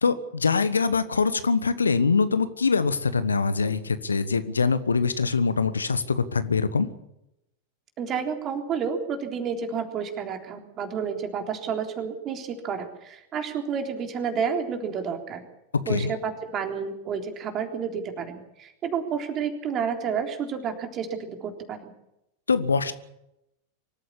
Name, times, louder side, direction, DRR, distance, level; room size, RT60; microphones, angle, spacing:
voice 1, 0.0-6.9 15.9-16.1 22.5-22.9, left 4 dB, 75° left, 13 dB, 1.3 m, -23 dB
voice 2, 8.0-15.4 15.9-21.9, right 6 dB, 30° right, 4 dB, 3.7 m, -30 dB
24.5 x 14.0 x 8.5 m, 0.84 s
figure-of-eight pair, 90°, 0 cm